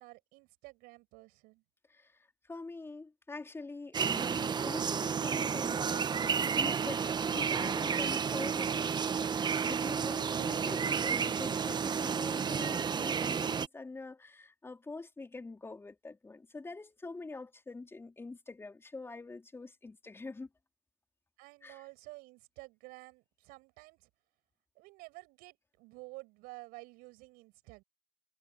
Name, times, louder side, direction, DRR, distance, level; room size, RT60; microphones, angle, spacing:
voice 1, 0.0-1.6 21.4-24.1 24.8-27.8, right 23 dB, 60° right, 6.9 m, -51 dB
voice 2, 1.9-20.5 21.6-21.8, left 3 dB, 15° left, 3.9 m, -45 dB
sound 1, 3.9-13.7, right 6 dB, 25° right, 1.2 m, -31 dB
hypercardioid pair, 85°, 17 cm